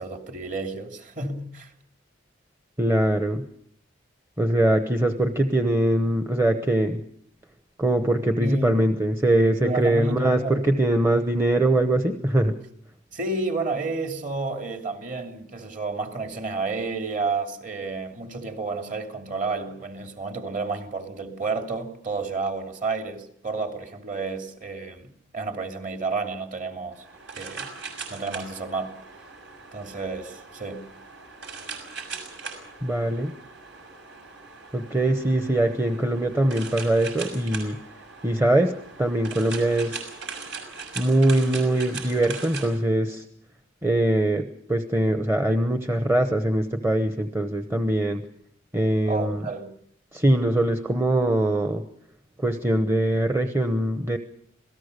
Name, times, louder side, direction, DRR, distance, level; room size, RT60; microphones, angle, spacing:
voice 1, 0.0-1.7 8.4-8.8 9.6-10.6 13.1-25.1 25.3-27.0 27.3-27.7 28.1-29.0 29.7-30.8 49.1-49.7, right 3 dB, 40° right, 2.8 m, -30 dB
voice 2, 2.8-3.4 4.4-7.0 7.8-12.6 32.8-33.3 34.7-37.8 38.2-40.1 41.0-43.2 43.8-48.2 48.7-49.5 50.1-51.8 52.4-54.2, right 1 dB, 10° right, 0.9 m, -22 dB
sound 1, 26.9-42.8, right 5 dB, 60° right, 6.1 m, -40 dB
27.0 x 18.0 x 6.7 m
head